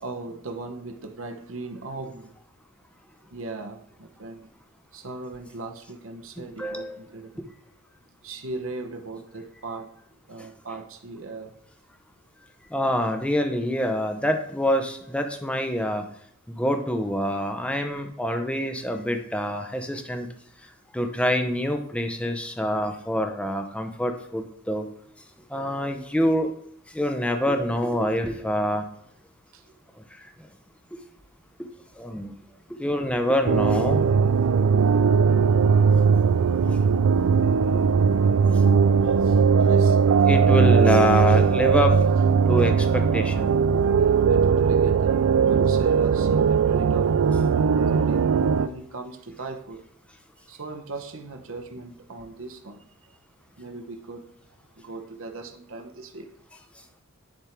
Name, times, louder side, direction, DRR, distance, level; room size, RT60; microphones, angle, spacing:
voice 1, 0.0-2.3 3.3-4.5 4.9-7.4 8.2-9.9 10.3-11.5 29.5-29.7 32.7-32.8 39.0-40.0 44.0-47.1 47.9-48.3 48.6-49.8 50.5-53.2 53.6-54.2 54.8-56.3, right 3 dB, 65° right, 5 dB, 0.9 m, -38 dB
voice 2, 6.4-7.0 12.7-16.0 16.5-20.3 20.9-24.9 25.5-26.5 26.9-28.9 30.9-31.0 32.0-32.3 32.8-34.0 36.7-36.8 37.7-37.8 40.3-42.0 42.5-43.5, equal, 5° left, 5 dB, 0.7 m, -26 dB
sound 1, 33.5-48.7, right 6 dB, 80° right, 0.4 m, -19 dB
10.5 x 3.6 x 4.5 m, 0.71 s
head